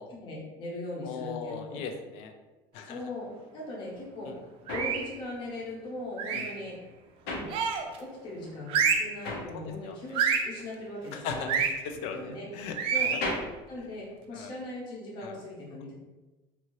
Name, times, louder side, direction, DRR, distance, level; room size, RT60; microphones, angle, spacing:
voice 1, 0.2-1.8 2.8-6.8 7.2-7.5 8.0-11.6 12.1-12.5 12.9-13.1 13.7-15.9, left 1 dB, 45° left, -3 dB, 0.8 m, -39 dB
voice 2, 1.0-2.3 2.7-3.0 4.3-4.4 6.3-6.4 9.5-10.2 11.1-11.5 11.8-13.1 14.3-14.5 15.2-15.3, left 6 dB, 70° left, 6 dB, 0.4 m, -39 dB
sound 1, 3.9-8.2 8.5-14.7, left 2 dB, 90° left, 0.8 m, -39 dB
sound 2, 4.7-5.1 6.2-6.6 7.5-8.0 8.7-9.2 10.1-10.5 11.5-11.7 12.8-13.3, right 6 dB, 55° right, 0.4 m, -27 dB
2.7 x 2.6 x 3.0 m, 1.1 s
cardioid pair, 135°, 11 cm